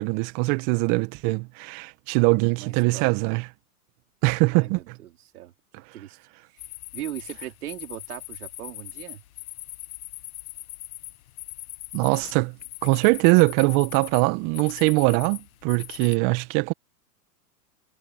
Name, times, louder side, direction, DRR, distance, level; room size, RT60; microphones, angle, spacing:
voice 1, 0.0-3.5 4.2-4.9 11.9-12.6 12.8-16.7, right 26 dB, 40° right, 1.8 m, -22 dB
voice 2, 2.5-3.2 4.5-5.5 5.9-6.2 6.5-6.6 6.9-9.2, right 13 dB, 70° right, 3.2 m, -39 dB
sound 1, 6.6-16.2, left 15 dB, 60° left, 1.8 m, -41 dB
hypercardioid pair, 120°, 47 cm